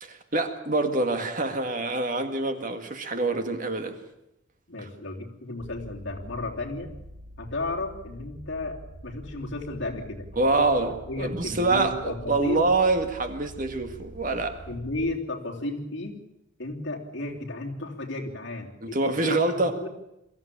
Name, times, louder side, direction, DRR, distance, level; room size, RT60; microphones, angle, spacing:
voice 1, 0.0-4.0 4.8-4.9 10.4-14.6 18.8-19.7, right 2 dB, 40° right, 7 dB, 1.9 m, -26 dB
voice 2, 4.7-6.9 7.4-10.7 11.1-12.7 14.7-16.2 16.6-19.9, left 2 dB, 60° left, 0 dB, 3.4 m, -33 dB
sound 1, 5.6-15.2, right 1 dB, 80° right, 3.6 m, -45 dB
23.5 x 14.5 x 8.7 m, 0.89 s
head